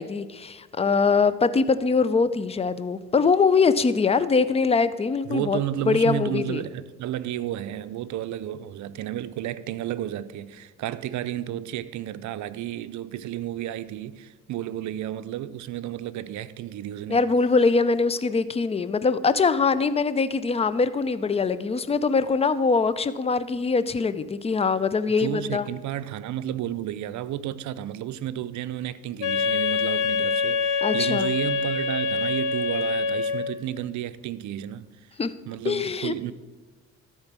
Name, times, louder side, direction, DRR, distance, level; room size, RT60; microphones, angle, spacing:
voice 1, 0.0-5.6 5.9-6.6 17.1-25.7 30.8-31.3 35.2-35.3 35.6-36.1, left 4 dB, 20° left, 0.5 m, -23 dB
voice 2, 5.3-17.2 25.1-34.9 35.5-36.3, right 12 dB, 70° right, 0.6 m, -32 dB
Wind instrument woodwind instrument, 29.2-33.7, left 4 dB, 80° left, 0.8 m, -25 dB
13.0 x 4.4 x 6.0 m
cardioid pair, 90°, 30 cm